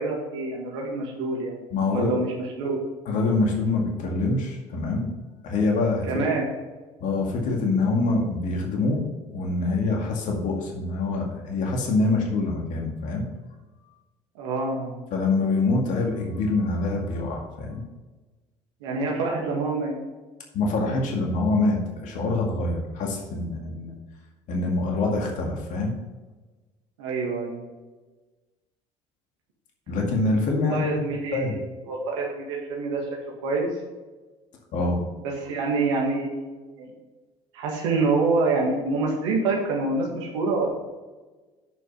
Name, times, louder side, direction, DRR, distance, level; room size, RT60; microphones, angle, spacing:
voice 1, 0.0-2.8 6.1-6.5 14.4-15.0 18.8-19.9 27.0-27.6 30.6-33.0 33.4-33.7 35.2-36.9 37.5-40.7, right 3 dB, 85° right, -2 dB, 2.1 m, -26 dB
voice 2, 1.7-2.2 3.1-5.1 5.4-6.1 7.0-9.0 9.3-13.2 15.1-17.8 20.5-23.9 24.5-25.9 29.9-31.0 31.3-31.6 34.7-35.1, left 3 dB, 60° left, 0 dB, 2.2 m, -25 dB
9.1 x 5.7 x 5.5 m, 1.2 s
hypercardioid pair, 70°, 15 cm